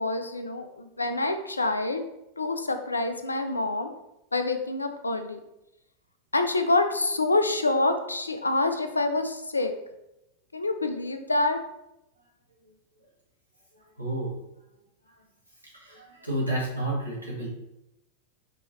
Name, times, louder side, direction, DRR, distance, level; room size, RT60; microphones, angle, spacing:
voice 1, 0.0-2.0 2.4-3.9 4.3-5.4 6.3-9.7 10.5-11.6, left 2 dB, 80° left, 8 dB, 0.4 m, -26 dB
voice 2, 13.7-14.3 15.0-15.1 15.6-17.5, right 1 dB, 85° right, -5 dB, 1.5 m, -31 dB
5.3 x 2.8 x 3.1 m, 0.90 s
figure-of-eight pair, 90°, 0 cm